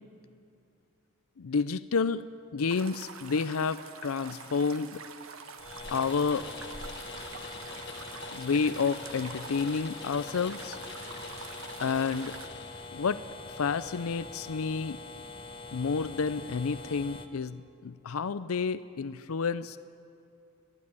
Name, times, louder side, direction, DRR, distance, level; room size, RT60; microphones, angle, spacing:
voice 1, 1.4-2.2 2.5-5.0 5.9-6.5 8.3-10.8 11.8-12.4 12.9-15.0 15.7-19.8, left 5 dB, 85° left, 14 dB, 0.5 m, -30 dB
sound 1, 2.7-12.5, right 5 dB, 75° right, 1.4 m, -46 dB
sound 2, 5.6-17.3, left 3 dB, 25° left, 1.0 m, -44 dB
sound 3, 5.8-13.1, left 5 dB, 55° left, 1.7 m, -46 dB
29.0 x 11.0 x 9.7 m, 2.6 s
head